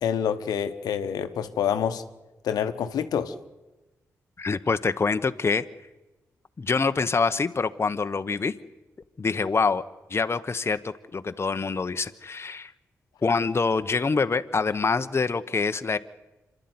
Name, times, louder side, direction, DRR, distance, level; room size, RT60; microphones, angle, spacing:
voice 1, 0.0-2.0 2.4-3.3, left 8 dB, 80° left, 1.1 m, -27 dB
voice 2, 4.4-5.6 6.6-8.5 9.2-9.8 10.1-12.7 13.2-16.0, left 4 dB, 40° left, 1.0 m, -25 dB
26.5 x 12.0 x 9.6 m
supercardioid pair, 45°, 7 cm